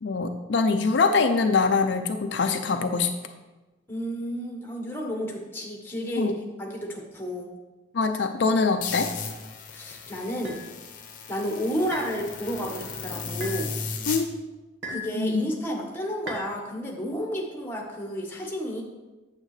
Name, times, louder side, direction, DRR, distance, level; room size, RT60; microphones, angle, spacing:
voice 1, 0.0-3.1 6.2-6.4 7.9-9.1 14.1-14.2 14.9-15.4, left 4 dB, 70° left, 6 dB, 0.5 m, -23 dB
voice 2, 3.9-6.3 6.6-7.5 9.7-10.6 11.3-13.7 14.9-18.8, equal, 10° left, 0 dB, 1.3 m, -31 dB
sound 1, 8.8-14.2, left 5 dB, 45° left, 0.9 m, -35 dB
sound 2, 10.4-10.6 11.9-12.2 13.4-13.6 14.8-15.1 16.3-16.5, left 1 dB, 75° right, 1.4 m, -35 dB
8.8 x 7.4 x 3.2 m, 1.1 s
head